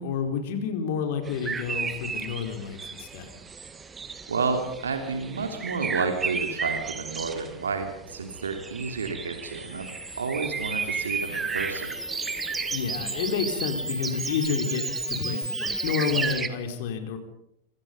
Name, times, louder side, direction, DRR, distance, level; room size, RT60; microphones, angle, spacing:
voice 1, 0.0-3.3 12.7-17.2, left 6 dB, 50° left, 6 dB, 4.3 m, -30 dB
sound 1, 1.2-16.5, right 5 dB, 15° right, 2.0 m, -34 dB
voice 2, 4.3-9.9 10.2-11.9, right 4 dB, 70° right, 6 dB, 3.1 m, -30 dB
Camera, 9.3-16.3, equal, 90° left, 3.3 m, -35 dB
26.5 x 25.0 x 5.3 m, 0.76 s
figure-of-eight pair, 90°, 0 cm